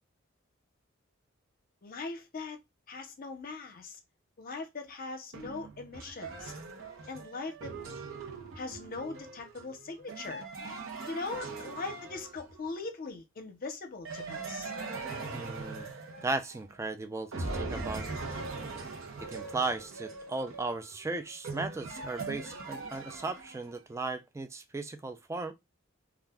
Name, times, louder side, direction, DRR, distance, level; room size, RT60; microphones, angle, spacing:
voice 1, 1.8-2.6 2.9-4.0 4.4-6.5 7.1-7.7 8.6-10.4 11.1-14.7, left 3 dB, 45° left, 0.7 m, -40 dB
sound 1, 5.3-12.7 14.1-16.9 17.3-23.8, right 3 dB, 75° right, 0.7 m, -41 dB
voice 2, 15.3-15.9 16.2-18.1 19.2-25.5, right 3 dB, 15° right, 0.3 m, -36 dB
2.4 x 2.2 x 3.4 m
head